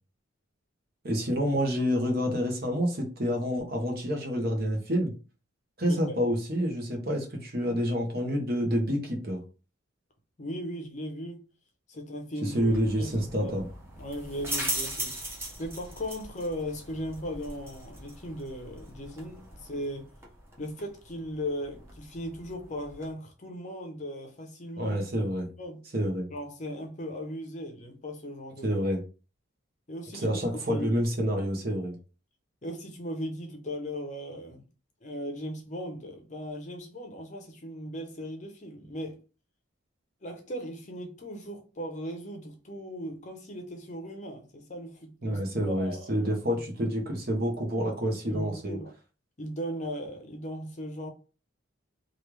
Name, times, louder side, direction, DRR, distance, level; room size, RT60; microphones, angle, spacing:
voice 1, 1.0-5.1 5.8-9.4 12.4-13.7 24.8-25.5 25.9-26.3 28.6-29.0 30.1-31.9 45.2-48.8, equal, 45° right, 1.0 m, -28 dB
voice 2, 5.8-6.2 10.4-11.4 11.9-13.1 13.4-13.5 14.0-15.2 15.6-20.1 20.6-25.0 25.5-25.8 26.3-28.7 29.9-30.9 32.6-34.6 35.0-39.2 40.2-45.4 45.7-46.6 48.3-48.9 49.4-51.1, equal, 35° left, 0.6 m, -38 dB
sound 1, 12.5-23.1, right 1 dB, 10° right, 0.8 m, -40 dB
3.2 x 2.4 x 3.2 m
head